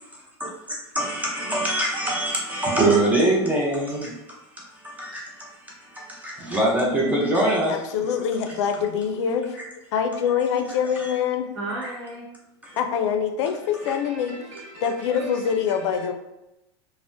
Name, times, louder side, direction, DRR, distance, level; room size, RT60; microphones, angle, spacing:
voice 1, 0.9-4.1 4.8-5.5 5.8-7.7 11.0-11.1 12.6-12.8, right 1 dB, 10° right, -4 dB, 0.6 m, -23 dB
voice 2, 7.7-9.6 9.9-11.5 12.8-14.3 14.8-16.1, left 7 dB, 75° left, 6 dB, 0.4 m, -24 dB
voice 3, 11.5-12.3 13.8-16.1, right 2 dB, 85° right, -4 dB, 1.0 m, -37 dB
3.4 x 2.0 x 2.6 m, 0.92 s
supercardioid pair, 130°, 14 cm